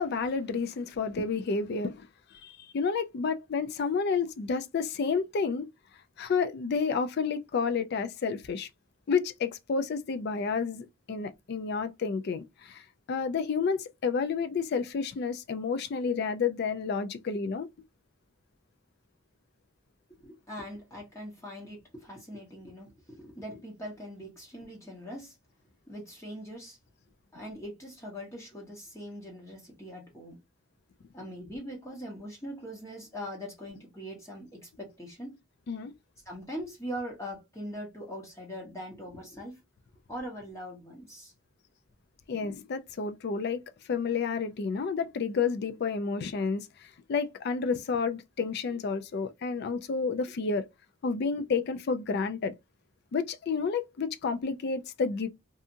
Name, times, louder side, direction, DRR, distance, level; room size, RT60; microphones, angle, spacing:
voice 1, 0.0-2.1 2.4-5.7 6.2-8.7 9.1-17.7 35.7-35.9 42.3-43.6 43.9-50.7 51.0-52.5 53.1-55.3, left 5 dB, 50° left, 0.3 m, -30 dB
voice 2, 20.2-25.4 25.9-26.8 27.3-30.4 31.1-35.4 36.3-39.6 40.1-41.3 45.0-45.1, equal, 15° left, 0.8 m, -41 dB
2.7 x 2.4 x 2.5 m
head